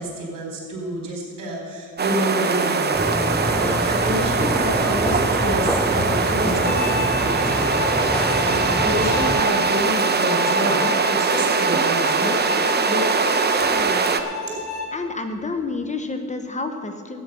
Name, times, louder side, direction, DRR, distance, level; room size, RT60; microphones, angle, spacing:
voice 1, 0.0-12.3 12.8-13.1 14.5-14.6, equal, 70° right, -1 dB, 4.1 m, -28 dB
sound 1, 2.0-14.2, right 5 dB, 30° right, 0.9 m, -22 dB
sound 2, 2.9-9.4, left 1 dB, 5° left, 0.4 m, -27 dB
Bowed string instrument, 6.6-15.0, left 4 dB, 65° left, 2.4 m, -30 dB
voice 2, 13.7-14.2 14.9-17.2, left 3 dB, 20° left, 7 dB, 1.0 m, -29 dB
13.5 x 9.1 x 6.1 m, 2.2 s
cardioid pair, 95°, 32 cm